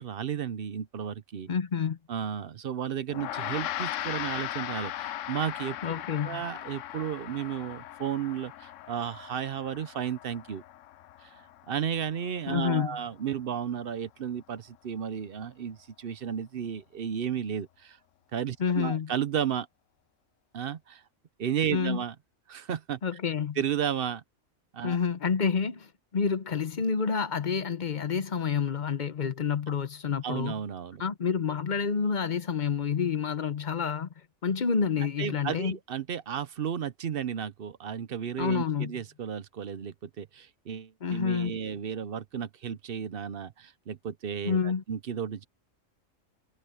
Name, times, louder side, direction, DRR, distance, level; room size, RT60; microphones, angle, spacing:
voice 1, 0.0-1.5 2.1-5.8 6.2-10.6 11.2-18.0 18.3-19.7 20.5-21.0 21.4-22.1 22.5-23.0 23.6-24.2 24.7-25.0 30.2-31.0 35.2-45.4, right 8 dB, 55° right, 0.8 m, -33 dB
voice 2, 1.5-2.0 5.8-6.4 12.5-13.0 18.6-19.1 21.7-22.0 23.0-23.6 24.8-30.5 31.0-34.1 34.4-35.8 38.4-38.9 41.0-41.6 44.4-44.8, left 6 dB, 45° left, 0.8 m, -28 dB
Gong, 3.1-12.6, left 13 dB, 75° left, 0.9 m, -38 dB
omnidirectional pair, 1.3 m